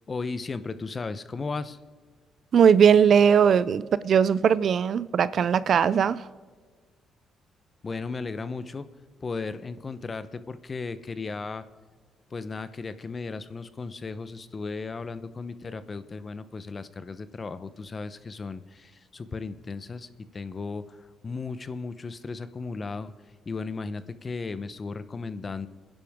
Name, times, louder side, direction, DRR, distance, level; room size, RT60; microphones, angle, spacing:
voice 1, 0.1-1.8 7.8-8.9 9.2-11.6 12.3-23.1 23.5-25.7, left 4 dB, 35° left, 0.8 m, -35 dB
voice 2, 2.5-6.3, right 7 dB, 60° right, 0.4 m, -19 dB
28.5 x 10.5 x 3.6 m
cardioid pair, 90°, 0 cm